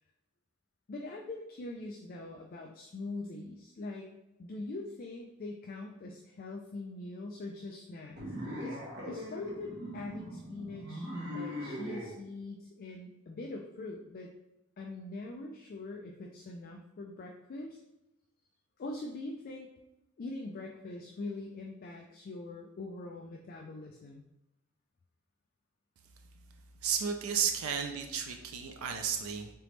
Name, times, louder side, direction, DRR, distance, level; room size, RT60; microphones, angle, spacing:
voice 1, 0.9-4.1 4.4-8.2 8.5-8.8 9.1-14.3 14.8-17.8 18.8-19.7 20.2-24.2, left 2 dB, 45° left, 1 dB, 0.4 m, -42 dB
sound 1, 8.2-12.1, equal, 55° right, 1.2 m, -40 dB
voice 2, 26.8-29.5, right 7 dB, 85° right, 5 dB, 0.4 m, -33 dB
3.8 x 3.4 x 3.1 m, 0.92 s
head